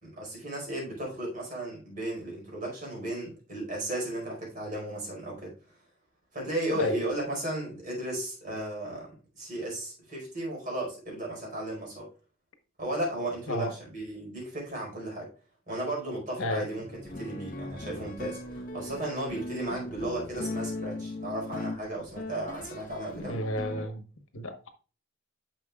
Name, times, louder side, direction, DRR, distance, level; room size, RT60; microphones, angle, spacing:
voice 1, 0.0-5.5 6.3-12.1 12.8-15.3 15.7-23.4, right 1 dB, 40° right, 4.7 m, -35 dB
sound 1, 16.8-23.9, left 2 dB, 40° left, 1.0 m, -38 dB
voice 2, 23.1-24.0 24.3-24.7, left 1 dB, 85° left, 1.2 m, -32 dB
10.5 x 6.4 x 2.4 m
head